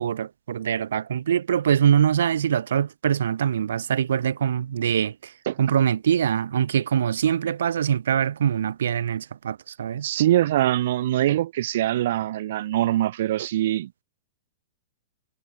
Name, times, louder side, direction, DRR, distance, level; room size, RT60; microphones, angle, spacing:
voice 1, 0.0-5.3 5.6-10.1, right 9 dB, 80° right, 2.0 m, -23 dB
voice 2, 10.0-13.9, right 13 dB, 65° right, 2.6 m, -23 dB
hypercardioid pair, 135°, 0 cm